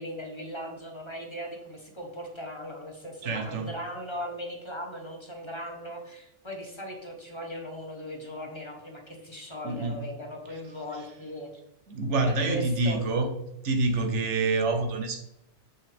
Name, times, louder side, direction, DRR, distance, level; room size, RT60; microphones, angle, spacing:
voice 1, 0.0-11.5 12.3-13.1, equal, 25° left, 1 dB, 1.2 m, -38 dB
voice 2, 3.2-3.7 9.6-10.0 11.9-13.3 13.6-15.2, right 3 dB, 85° right, 6 dB, 1.3 m, -27 dB
7.0 x 6.3 x 3.5 m, 0.87 s
omnidirectional pair, 1.2 m